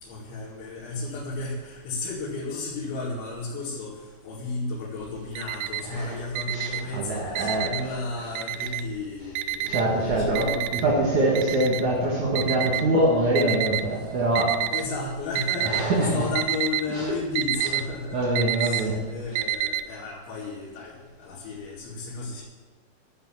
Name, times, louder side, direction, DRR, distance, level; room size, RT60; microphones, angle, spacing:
voice 1, 0.0-10.8 14.7-22.4, left 3 dB, 90° left, -8 dB, 4.6 m, -33 dB
Alarm, 5.0-6.0 6.3-8.0 8.4-9.0 9.4-13.8 14.4-15.0 15.2-15.9 16.1-19.8, right 12 dB, 90° right, 2.2 m, -29 dB
voice 2, 5.8-6.2 6.5-7.7 9.6-14.7 15.6-16.3 16.9-17.1 18.1-19.1 19.3-19.4, right 1 dB, 55° right, -4 dB, 2.5 m, -24 dB
12.0 x 7.3 x 7.3 m, 1.4 s
omnidirectional pair, 5.1 m